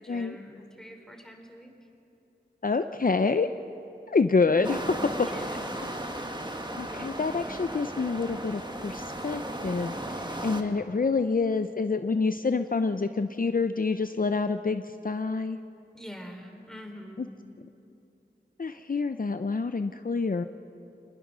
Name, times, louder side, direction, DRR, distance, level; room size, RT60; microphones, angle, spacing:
voice 1, 0.0-1.7 5.2-5.8 15.9-17.3, equal, 5° left, 3 dB, 3.2 m, -45 dB
voice 2, 2.6-3.5 4.1-4.8 5.2-5.3 5.8-5.9 6.8-15.6 17.2-17.3 18.6-20.4, left 4 dB, 50° left, 9 dB, 0.6 m, -27 dB
sound 1, 4.6-10.6, right 1 dB, 25° right, 1.8 m, -35 dB
26.5 x 20.0 x 6.2 m, 2.8 s
wide cardioid pair, 55°, 18 cm